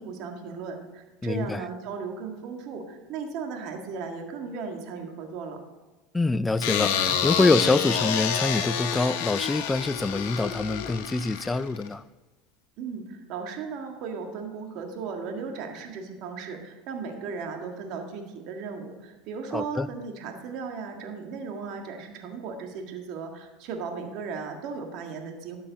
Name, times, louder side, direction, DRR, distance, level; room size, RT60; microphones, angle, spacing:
voice 1, 0.0-5.6 12.8-25.6, right 5 dB, 60° right, 3 dB, 1.8 m, -36 dB
voice 2, 1.2-1.6 6.1-12.0 19.5-19.9, left 3 dB, 15° left, 17 dB, 0.4 m, -25 dB
sound 1, 6.6-11.9, left 8 dB, 75° left, 1.3 m, -28 dB
12.5 x 7.5 x 4.1 m, 1.1 s
supercardioid pair, 100°, 0 cm